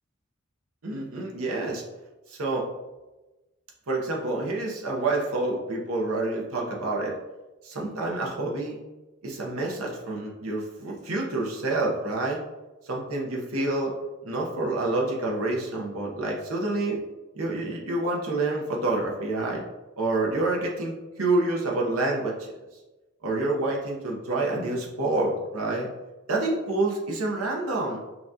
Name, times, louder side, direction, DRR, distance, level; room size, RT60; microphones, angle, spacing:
voice 1, 0.8-1.8 2.3-2.7 3.9-7.1 7.6-8.8 9.2-12.4 12.8-13.9 14.2-17.0 17.3-19.6 20.0-22.5 23.2-25.9 26.3-28.0, right 2 dB, 75° right, -1 dB, 0.9 m, -28 dB
5.7 x 2.4 x 2.7 m, 1.1 s
head